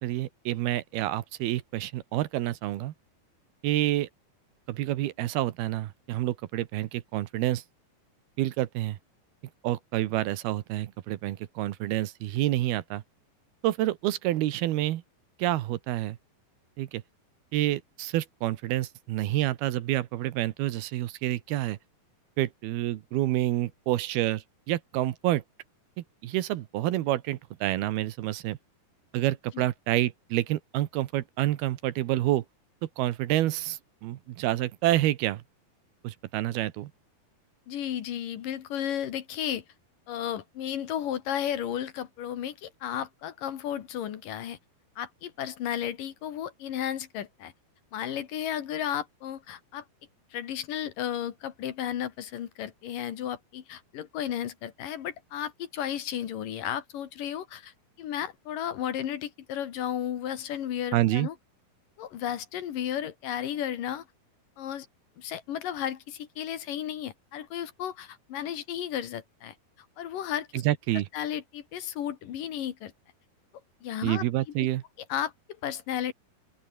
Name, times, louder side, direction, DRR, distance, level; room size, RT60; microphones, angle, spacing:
voice 1, 0.0-2.9 3.6-4.1 4.7-7.6 8.4-9.0 9.6-13.0 13.6-15.0 15.4-16.2 16.8-17.0 17.5-21.8 22.4-25.4 26.0-28.6 29.1-32.4 33.0-35.4 36.0-36.9 60.9-61.3 70.5-71.1 74.0-74.8, right 15 dB, 80° right, 3.1 m, -28 dB
voice 2, 37.7-39.6 40.1-44.6 45.0-47.5 47.9-49.8 50.3-61.3 62.0-64.1 64.6-64.9 65.2-69.5 70.0-70.6 71.1-72.9 73.8-74.2 75.1-75.3 75.6-76.1, left 10 dB, 65° left, 3.1 m, -33 dB
open air
omnidirectional pair, 4.4 m